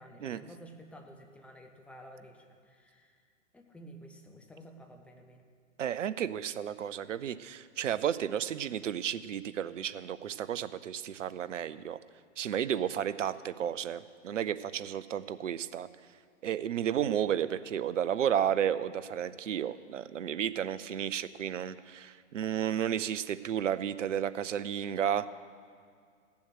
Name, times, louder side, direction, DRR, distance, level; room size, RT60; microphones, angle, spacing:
voice 1, 0.0-3.2 3.5-5.4, equal, 5° left, 3 dB, 0.8 m, -52 dB
voice 2, 5.8-12.0 12.4-15.9 16.4-25.3, right 9 dB, 70° right, 15 dB, 0.6 m, -32 dB
15.5 x 7.1 x 6.2 m, 2.1 s
figure-of-eight pair, 115°, 38 cm